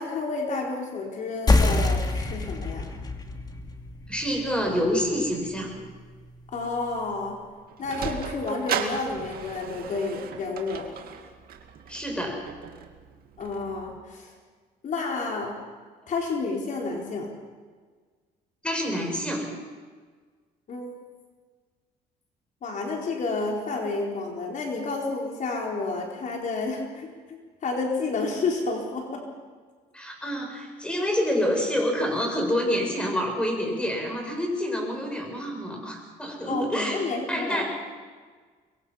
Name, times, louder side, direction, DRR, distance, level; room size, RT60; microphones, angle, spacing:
voice 1, 0.0-2.9 6.5-7.4 7.8-10.9 13.4-14.3 14.8-15.5 16.1-17.3 20.7-20.9 22.6-29.2 36.5-37.6, left 3 dB, 50° left, 0 dB, 4.3 m, -30 dB
sound 1, 1.5-6.6, left 2 dB, 25° left, 2.5 m, -27 dB
voice 2, 4.1-5.7 11.9-12.4 18.6-19.5 29.9-37.0 37.3-37.6, equal, 5° left, 1 dB, 7.3 m, -27 dB
Sliding door, 7.4-14.0, right 8 dB, 60° right, 2.3 m, -36 dB
25.0 x 22.5 x 5.7 m, 1.5 s
cardioid pair, 110°, 17 cm